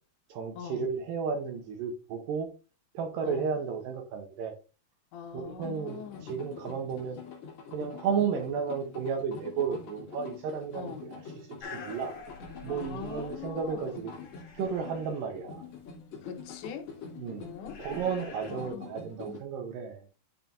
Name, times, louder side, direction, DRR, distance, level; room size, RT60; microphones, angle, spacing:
voice 1, 0.3-2.5 2.9-4.6 5.3-7.2 7.7-12.1 12.6-14.1 14.5-15.7 17.2-17.4 17.8-20.0, right 6 dB, 85° right, 1.9 m, -33 dB
voice 2, 5.1-6.3 10.7-11.0 12.7-14.0 16.2-16.9 17.4-17.8 18.5-18.9, left 8 dB, 85° left, 3.1 m, -42 dB
sound 1, 5.6-19.4, left 5 dB, 55° left, 1.8 m, -45 dB
sound 2, 11.6-13.8 14.0-15.3 16.4-18.7, left 4 dB, 40° left, 3.0 m, -48 dB
10.5 x 4.6 x 2.5 m
omnidirectional pair, 5.0 m